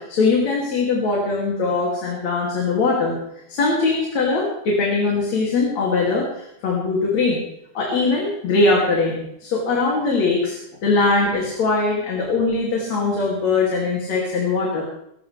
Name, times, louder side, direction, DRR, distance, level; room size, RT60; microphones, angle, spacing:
voice 1, 0.0-3.2 3.5-7.4 7.7-14.8, left 3 dB, 60° left, -3 dB, 4.0 m, -21 dB
23.5 x 14.0 x 3.4 m, 0.77 s
omnidirectional pair, 3.5 m